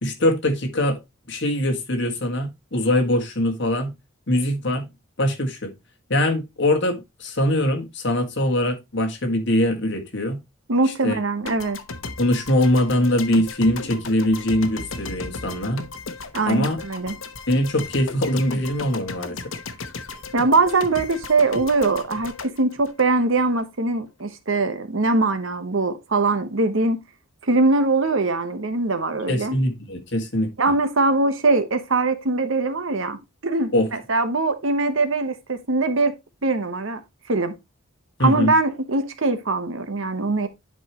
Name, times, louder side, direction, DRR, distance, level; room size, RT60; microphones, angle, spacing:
voice 1, 0.0-1.0 1.3-3.9 4.3-4.9 5.2-5.7 6.1-10.4 11.0-11.2 12.2-15.8 16.4-16.8 17.5-19.4 29.3-30.5 33.7-33.9 38.2-38.5, left 1 dB, 60° left, 1.8 m, -22 dB
voice 2, 10.7-11.8 16.3-17.2 20.3-27.0 27.4-29.6 30.6-36.1 36.4-37.0 37.3-37.5 38.2-40.5, right 3 dB, 75° right, 1.1 m, -22 dB
sound 1, 11.4-23.6, left 4 dB, 80° left, 1.0 m, -36 dB
10.5 x 4.8 x 3.0 m
head